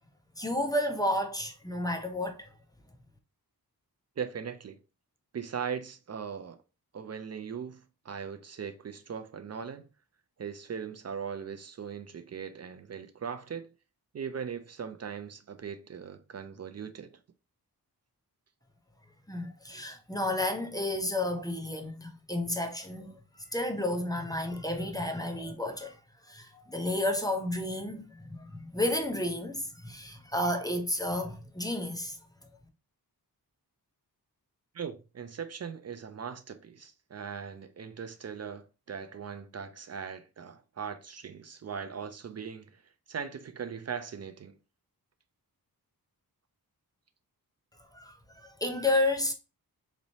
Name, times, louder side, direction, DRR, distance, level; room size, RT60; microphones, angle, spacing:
voice 1, 0.4-2.5 19.3-23.1 23.5-26.0 26.3-32.2 47.9-49.3, left 1 dB, 10° left, 0.6 m, -31 dB
voice 2, 4.2-4.8 5.3-6.6 6.9-9.8 10.4-13.7 14.1-17.2 34.7-42.8 43.1-44.6, right 7 dB, 45° right, 0.4 m, -39 dB
4.0 x 3.1 x 2.7 m
wide cardioid pair, 105°, 38 cm